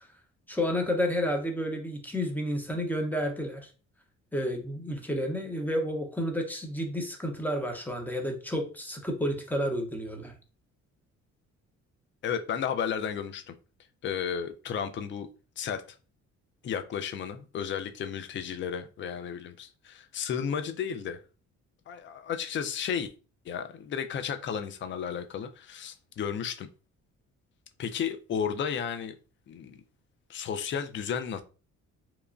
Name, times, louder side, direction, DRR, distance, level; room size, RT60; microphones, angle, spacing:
voice 1, 0.5-3.7 4.3-10.3, equal, 5° left, 0.7 m, -30 dB
voice 2, 12.2-13.5 14.0-15.3 15.6-15.8 16.6-21.2 21.9-23.1 23.5-26.7 27.8-29.1 29.5-29.8 30.3-31.4, left 7 dB, 40° left, 0.4 m, -33 dB
2.9 x 2.2 x 2.4 m
cardioid pair, 90°, 30 cm